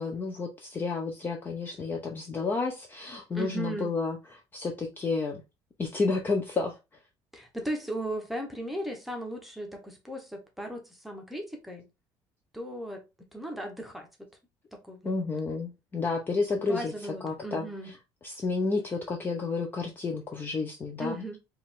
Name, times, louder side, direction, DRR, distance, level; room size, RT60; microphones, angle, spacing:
voice 1, 0.0-5.4 5.8-6.8 15.0-18.0 18.2-21.2, left 4 dB, 20° left, 0.6 m, -31 dB
voice 2, 3.3-3.9 7.3-11.8 12.5-13.0 13.3-14.1 14.7-15.1 16.6-17.9 21.0-21.4, right 1 dB, ahead, 0.9 m, -36 dB
4.6 x 2.5 x 3.7 m
cardioid pair, 160°, 10 cm